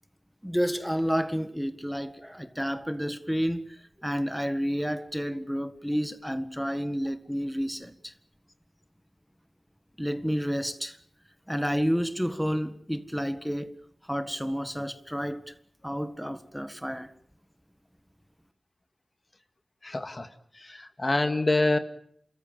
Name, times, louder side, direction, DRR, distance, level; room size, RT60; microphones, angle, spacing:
voice 1, 0.4-8.1 10.0-11.0 11.5-13.7 14.1-15.5 15.8-17.1, equal, ahead, 1.7 m, -30 dB
voice 2, 19.8-20.3 20.5-21.8, left 2 dB, 40° left, 2.0 m, -26 dB
29.0 x 14.0 x 9.2 m
cardioid pair, 50°, 0 cm